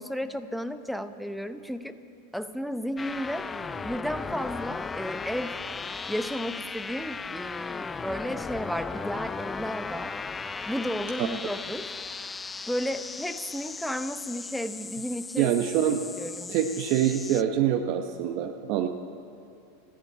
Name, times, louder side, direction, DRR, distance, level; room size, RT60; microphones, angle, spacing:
voice 1, 0.0-2.0 2.3-3.5 3.8-5.6 6.1-10.1 10.7-11.9 12.7-15.5 16.2-16.5 18.8-18.9, equal, ahead, 11 dB, 0.8 m, -33 dB
sound 1, 3.0-17.4, left 4 dB, 15° left, 0.3 m, -37 dB
voice 2, 15.4-16.0 16.5-18.9, right 10 dB, 55° right, 5 dB, 0.8 m, -25 dB
14.0 x 11.0 x 8.6 m, 2.7 s
hypercardioid pair, 105°, 0 cm